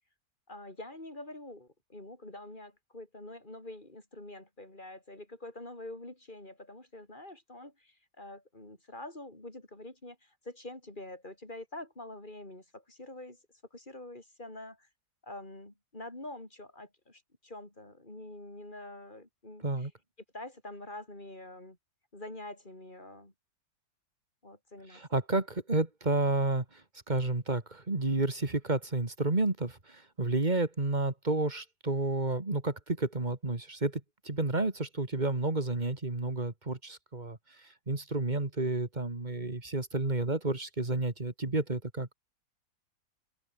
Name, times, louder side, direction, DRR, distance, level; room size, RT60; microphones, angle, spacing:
voice 1, 0.5-13.4 13.7-14.9 15.2-19.9 20.3-21.8 22.1-23.3 24.4-25.0, left 1 dB, 25° left, 5.5 m, -46 dB
voice 2, 24.9-26.8 27.1-37.4 37.9-42.1, right 2 dB, 25° right, 2.8 m, -31 dB
omnidirectional pair, 1.9 m